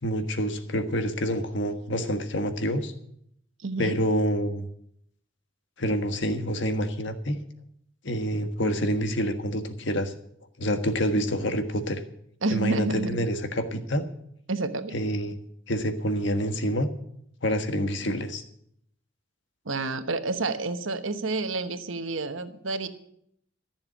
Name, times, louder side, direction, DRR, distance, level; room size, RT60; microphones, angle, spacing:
voice 1, 0.0-2.9 3.8-4.7 5.8-7.4 8.0-10.1 10.6-12.0 12.5-14.0 14.9-15.3 15.7-16.9 17.4-18.4, equal, 65° left, 8 dB, 1.5 m, -27 dB
voice 2, 3.6-4.0 12.4-13.2 14.5-15.0 19.6-22.9, right 3 dB, 90° right, 9 dB, 1.1 m, -29 dB
14.0 x 7.1 x 9.9 m, 0.71 s
head